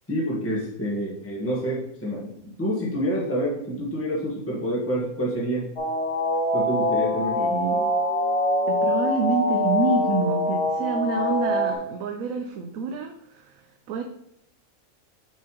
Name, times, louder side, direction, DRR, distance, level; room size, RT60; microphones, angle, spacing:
voice 1, 0.1-5.7 6.5-7.4, equal, 10° left, -5 dB, 1.3 m, -27 dB
sound 1, 5.8-11.7, left 1 dB, 30° left, 0.7 m, -24 dB
voice 2, 7.4-7.9 8.7-14.0, right 5 dB, 70° right, 3 dB, 1.0 m, -28 dB
7.4 x 5.6 x 3.0 m, 0.74 s
omnidirectional pair, 1.5 m